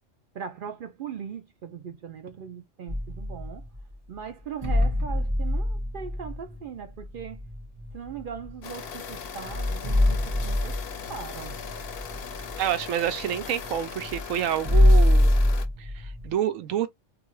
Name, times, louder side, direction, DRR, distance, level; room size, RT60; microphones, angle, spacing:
voice 1, 0.3-3.6 4.1-7.4 7.9-10.8 11.1-11.6, right 7 dB, 60° right, 0.5 m, -39 dB
sound 1, 2.9-3.8 4.6-8.6 9.1-9.2 9.4-16.3, left 1 dB, 25° right, 1.2 m, -25 dB
sound 2, 8.6-15.6, left 7 dB, 60° left, 0.7 m, -39 dB
voice 2, 12.6-15.3 15.8-16.9, right 10 dB, 90° right, 1.0 m, -28 dB
2.5 x 2.4 x 3.0 m
omnidirectional pair, 1.3 m